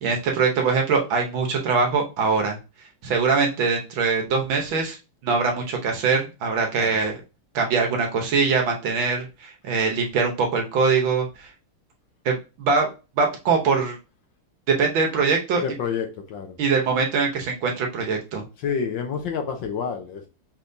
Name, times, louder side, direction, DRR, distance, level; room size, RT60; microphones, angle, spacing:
voice 1, 0.0-2.6 3.0-5.0 5.2-7.2 7.5-11.5 12.2-12.9 13.2-14.0 14.7-15.6 16.6-18.5, right 4 dB, 65° right, 1.7 m, -22 dB
voice 2, 15.6-16.6 18.6-20.2, left 6 dB, 65° left, 1.4 m, -28 dB
5.7 x 3.3 x 2.7 m
omnidirectional pair, 2.4 m